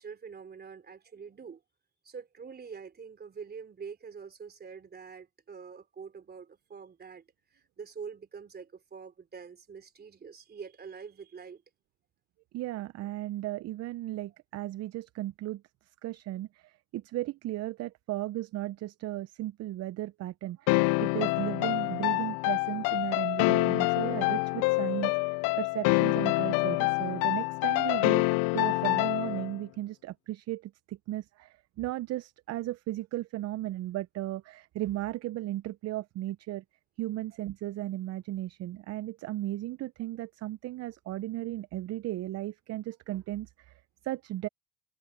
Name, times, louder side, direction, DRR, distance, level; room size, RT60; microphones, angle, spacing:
voice 1, 0.0-1.6 2.0-11.6, right 6 dB, 25° right, 3.4 m, -45 dB
voice 2, 12.5-15.6 16.0-28.2 28.5-36.6 37.0-43.7 44.0-44.5, right 15 dB, 40° right, 0.8 m, -35 dB
sound 1, 20.7-29.6, left 27 dB, 55° left, 0.5 m, -27 dB
hypercardioid pair, 90°, 38 cm